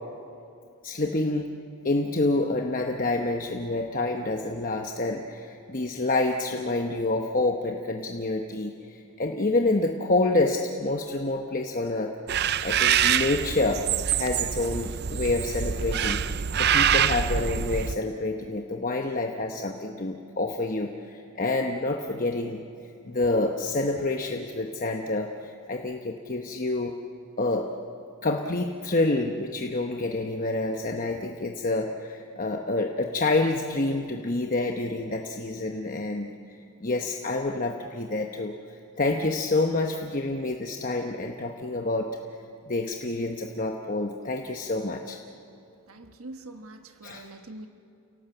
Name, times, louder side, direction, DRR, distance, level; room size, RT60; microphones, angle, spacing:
voice 1, 0.8-1.5 1.8-12.1 12.6-13.9 14.2-22.6 23.0-26.9 27.4-27.7 28.2-36.3 36.8-42.1 42.7-45.2 47.0-47.3, left 2 dB, 40° left, 3 dB, 1.0 m, -28 dB
sound 1, 12.3-17.9, right 9 dB, 50° right, 0.5 m, -25 dB
voice 2, 45.9-47.7, right 2 dB, 75° right, 6 dB, 1.4 m, -43 dB
29.0 x 18.0 x 7.9 m, 2.6 s
head